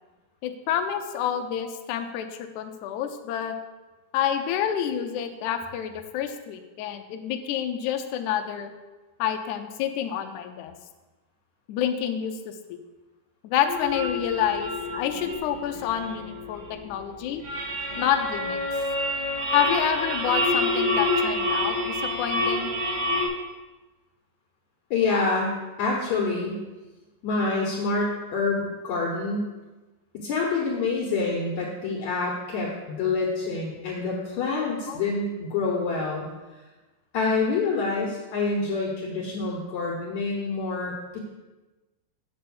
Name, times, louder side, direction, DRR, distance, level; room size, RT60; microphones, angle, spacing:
voice 1, 0.4-3.6 4.1-8.7 9.2-10.7 11.7-12.8 13.4-17.4 18.0-18.6 19.5-22.7 34.9-35.0, left 9 dB, 80° left, 6 dB, 1.8 m, -28 dB
sound 1, 13.7-23.3, left 1 dB, 60° right, 3.6 m, -28 dB
voice 2, 24.9-25.5 25.8-26.6 27.2-29.5 30.1-36.3 37.1-41.2, left 3 dB, 65° left, -2 dB, 2.2 m, -27 dB
7.7 x 5.6 x 7.1 m, 1.2 s
omnidirectional pair, 4.1 m